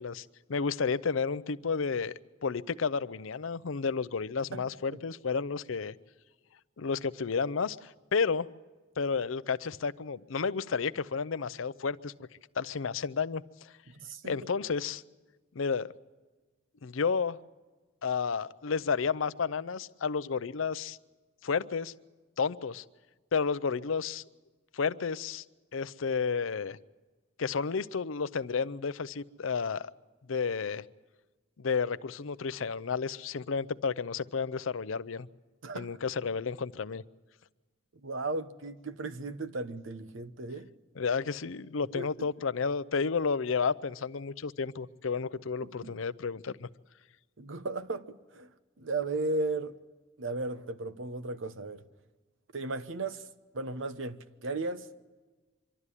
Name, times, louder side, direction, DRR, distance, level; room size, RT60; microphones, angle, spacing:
voice 1, 0.0-2.1 2.4-5.9 6.8-8.5 9.0-12.1 12.6-13.7 14.2-15.0 15.5-15.9 16.8-17.4 18.0-21.0 21.4-21.9 22.4-22.8 23.3-24.2 24.7-25.4 25.7-26.8 27.4-29.9 30.3-30.8 31.6-35.3 35.7-37.0 41.0-46.7, left 5 dB, 75° left, 0.6 m, -31 dB
voice 2, 13.9-14.4 35.6-36.0 38.0-40.7 41.9-42.1 45.6-45.9 47.4-48.5 48.8-49.8 50.2-51.8 52.5-53.2 53.5-54.9, right 2 dB, 70° right, 1.0 m, -35 dB
25.0 x 12.5 x 9.8 m
head